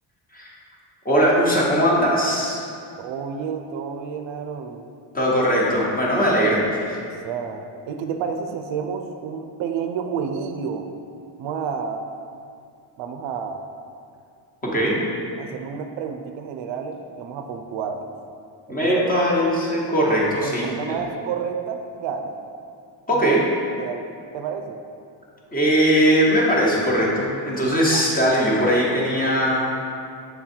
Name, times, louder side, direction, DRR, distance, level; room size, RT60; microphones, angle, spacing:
voice 1, 1.0-2.6 5.1-7.0 14.6-15.0 18.7-21.0 23.1-23.4 25.5-29.7, equal, 20° left, -4 dB, 1.0 m, -20 dB
voice 2, 3.0-4.8 7.2-10.9 11.4-12.1 13.0-13.6 15.4-18.1 18.7-19.3 20.4-22.4 23.2-23.4 23.8-24.0 24.3-24.8 27.9-28.0, right 6 dB, 75° right, 6 dB, 0.6 m, -30 dB
6.7 x 3.8 x 4.4 m, 2.4 s
cardioid pair, 155°, 46 cm